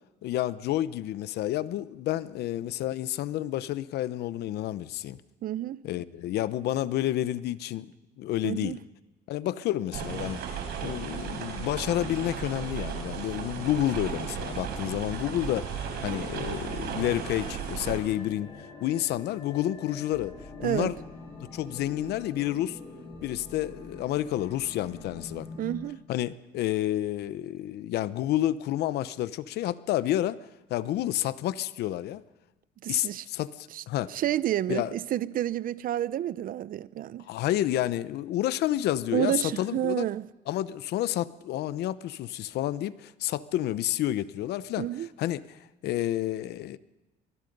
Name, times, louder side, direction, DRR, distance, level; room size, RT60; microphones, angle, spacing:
voice 1, 0.2-5.2 5.8-7.9 8.2-8.8 9.3-10.4 10.8-18.5 18.8-20.4 20.6-21.0 21.5-22.8 23.2-25.5 26.1-30.4 30.7-32.2 32.9-34.1 34.7-34.9 37.3-40.0 40.5-44.9 45.2-46.8, left 13 dB, 75° left, 0.8 m, -30 dB
voice 2, 5.4-5.8 8.4-8.8 20.6-20.9 25.6-26.0 32.8-33.2 33.7-33.8 34.1-37.2 39.1-40.3 44.8-45.1, right 12 dB, 55° right, 0.6 m, -30 dB
sound 1, 9.9-18.0, right 7 dB, 75° right, 4.4 m, -35 dB
sound 2, 11.5-25.9, left 3 dB, 30° left, 7.8 m, -46 dB
25.0 x 19.5 x 5.4 m
cardioid pair, 110°, 17 cm